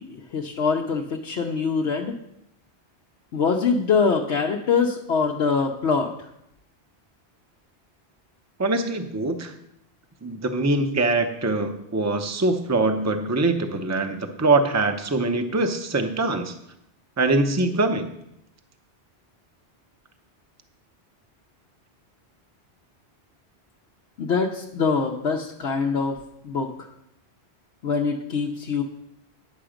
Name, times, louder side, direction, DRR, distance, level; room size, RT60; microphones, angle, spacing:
voice 1, 0.0-2.2 3.3-6.3 24.2-26.2 26.4-26.9 27.8-28.8, left 5 dB, 80° left, 0 dB, 1.0 m, -24 dB
voice 2, 8.6-9.5 10.2-16.5 17.2-18.1, right 2 dB, 20° right, 7 dB, 0.6 m, -23 dB
10.0 x 6.8 x 5.0 m, 0.80 s
omnidirectional pair, 1.1 m